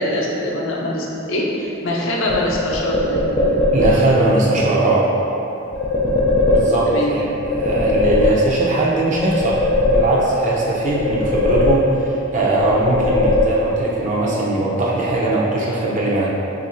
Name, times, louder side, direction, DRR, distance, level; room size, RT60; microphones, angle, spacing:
voice 1, 0.0-3.6 6.8-7.2, left 1 dB, 70° left, -4 dB, 0.6 m, -23 dB
sound 1, 2.3-4.3 5.7-7.1 7.4-8.8 9.1-10.5 10.9-12.2 12.6-13.9, left 2 dB, 25° left, 0.5 m, -19 dB
voice 2, 3.7-5.1 6.5-16.3, right 2 dB, 35° right, -5 dB, 0.5 m, -20 dB
2.9 x 2.5 x 4.2 m, 2.9 s
head